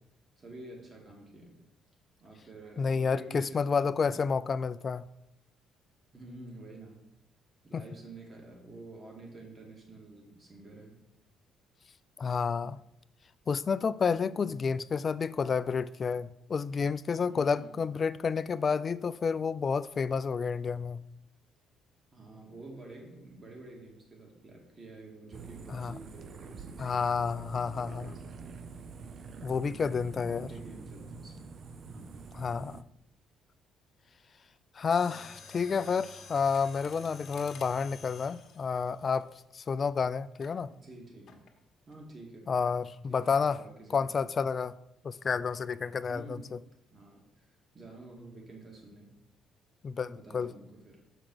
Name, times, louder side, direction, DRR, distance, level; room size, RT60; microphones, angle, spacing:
voice 1, 0.4-1.6 2.2-4.2 6.1-7.0 7.6-11.0 14.4-14.8 17.3-17.8 22.1-26.9 28.0-28.5 30.0-31.5 31.8-32.2 35.0-35.3 40.7-41.4 41.9-42.7 43.1-44.1 46.1-46.5 46.9-47.5 47.7-49.2 50.2-51.0, right 2 dB, 30° right, 2.0 m, -49 dB
voice 2, 2.8-5.0 7.7-7.8 12.2-12.8 13.5-21.0 25.7-26.0 26.8-28.1 29.4-30.5 32.4-32.8 34.8-40.7 42.5-43.6 43.9-44.8 45.0-46.4 49.8-50.5, left 5 dB, 35° left, 0.3 m, -30 dB
sound 1, 25.3-32.8, right 5 dB, 45° right, 0.5 m, -46 dB
Mechanisms, 34.8-39.8 40.4-40.6 41.3-41.6 41.9-42.0, left 4 dB, 55° left, 1.3 m, -50 dB
6.6 x 4.9 x 6.1 m
cardioid pair, 115°, 0 cm